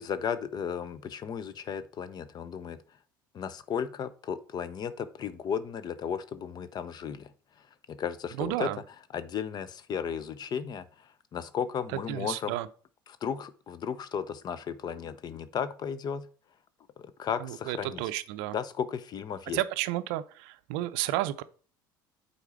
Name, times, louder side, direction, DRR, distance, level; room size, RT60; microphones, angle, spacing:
voice 1, 0.0-2.8 3.3-7.3 7.9-8.7 9.1-12.5 13.2-16.3 17.2-18.0 18.5-19.6, left 7 dB, 40° left, 0.7 m, -34 dB
voice 2, 8.4-8.8 12.1-12.7 17.4-18.6 19.5-21.4, right 15 dB, 60° right, 0.5 m, -32 dB
8.1 x 4.3 x 4.4 m
figure-of-eight pair, 65°, 11 cm